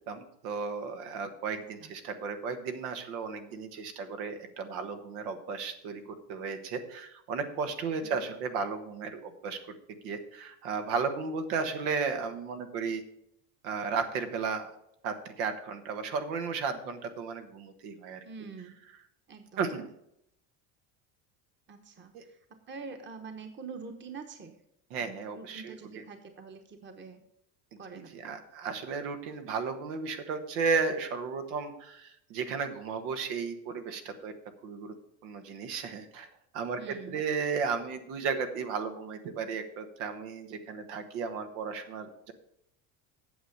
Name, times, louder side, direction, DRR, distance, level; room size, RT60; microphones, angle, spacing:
voice 1, 0.1-9.6 10.0-13.0 13.6-14.7 15.0-18.2 19.6-19.9 22.1-22.2 24.9-26.0 27.9-34.3 34.6-34.9 35.2-36.3 36.5-42.3, right 5 dB, 85° right, 7 dB, 1.5 m, -34 dB
voice 2, 18.2-18.8 19.3-19.6 21.7-22.1 22.7-24.5 25.0-27.2 27.8-28.4 36.8-37.2, right 5 dB, 25° right, 6 dB, 1.1 m, -45 dB
8.8 x 6.7 x 6.6 m, 0.78 s
supercardioid pair, 110°, 44 cm